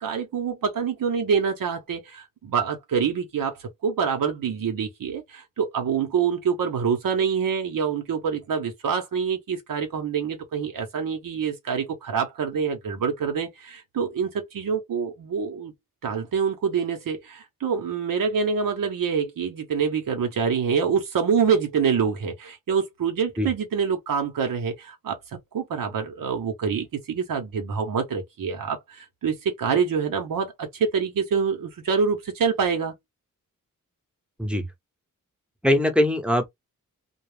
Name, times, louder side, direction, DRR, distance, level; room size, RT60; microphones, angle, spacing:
voice 1, 0.0-15.7 16.0-25.2 25.5-32.9, right 6 dB, 85° right, 0.7 m, -26 dB
voice 2, 35.6-36.5, left 1 dB, 5° right, 0.8 m, -21 dB
2.3 x 2.0 x 3.2 m
wide cardioid pair, 85°, 33 cm